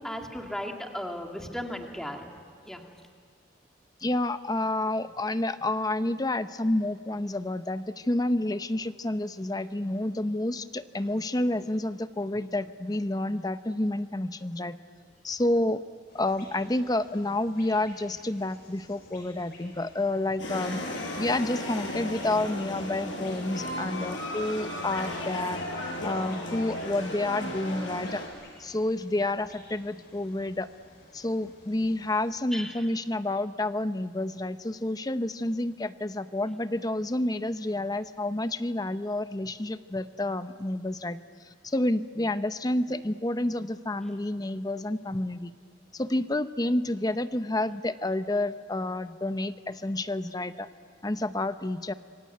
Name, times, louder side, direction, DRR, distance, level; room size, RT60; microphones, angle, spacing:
voice 1, 0.0-2.3 2.7-2.8 32.5-32.8, equal, 5° left, 2 dB, 2.4 m, -36 dB
voice 2, 4.0-14.8 15.2-15.8 16.1-20.8 21.2-25.6 26.0-28.2 28.6-30.7 31.1-41.2 41.6-45.5 45.9-50.7 51.0-51.9, left 1 dB, 20° left, 11 dB, 0.7 m, -29 dB
sound 1, 16.1-32.3, left 2 dB, 60° left, 7.2 m, -54 dB
sound 2, 20.4-28.3, left 1 dB, 85° left, 6.8 m, -35 dB
26.5 x 23.5 x 9.3 m, 2.1 s
head